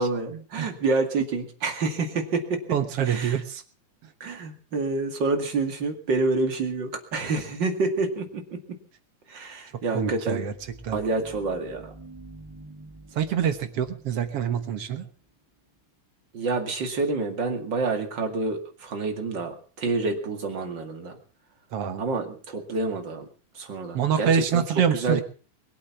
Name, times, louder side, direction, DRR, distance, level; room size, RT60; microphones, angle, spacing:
voice 1, 0.0-2.6 3.1-3.4 4.2-8.6 9.3-10.4 10.9-11.9 16.3-21.2 22.0-23.3 23.5-24.6 24.9-25.2, right 3 dB, 40° right, 5 dB, 2.5 m, -28 dB
voice 2, 2.7-3.6 9.9-10.5 10.8-11.0 13.1-15.1 21.7-22.0 23.9-25.2, right 8 dB, 60° right, 9 dB, 1.9 m, -25 dB
sound 1, 10.3-15.4, right 2 dB, 10° right, 1.8 m, -48 dB
22.0 x 8.4 x 7.1 m, 0.42 s
omnidirectional pair, 3.6 m